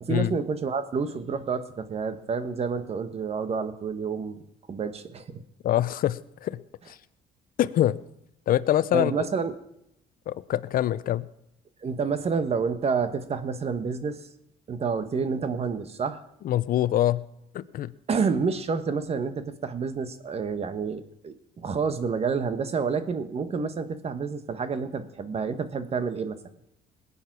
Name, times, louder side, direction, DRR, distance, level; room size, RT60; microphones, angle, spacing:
voice 1, 0.0-4.4 4.7-5.4 8.9-9.5 11.8-14.2 14.7-16.2 18.1-26.4, right 5 dB, 35° right, 11 dB, 1.3 m, -29 dB
voice 2, 5.6-6.6 6.9-7.0 7.6-8.0 8.5-9.3 10.3-11.3 16.4-17.2 17.5-17.9, left 12 dB, 55° left, 16 dB, 0.7 m, -24 dB
20.0 x 8.7 x 6.1 m, 0.79 s
cardioid pair, 110°, 17 cm